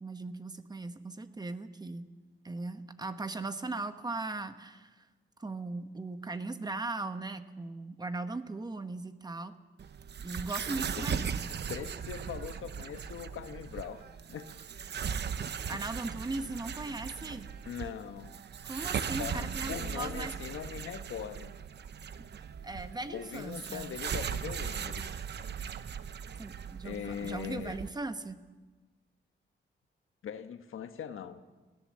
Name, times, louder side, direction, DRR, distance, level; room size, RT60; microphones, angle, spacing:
voice 1, 0.0-2.1 2.4-5.0 5.4-9.5 10.2-11.6 15.4-17.5 18.6-20.3 22.6-23.9 26.4-28.4, right 2 dB, 20° right, 10 dB, 1.0 m, -38 dB
sound 1, 9.8-27.9, right 7 dB, 55° right, 0.9 m, -38 dB
voice 2, 11.7-14.5 15.7-15.9 17.7-18.4 19.2-21.5 23.1-25.1 26.8-27.8 30.2-31.4, left 8 dB, 85° left, 9 dB, 1.3 m, -41 dB
22.0 x 16.5 x 7.5 m, 1.3 s
wide cardioid pair, 160°, 20 cm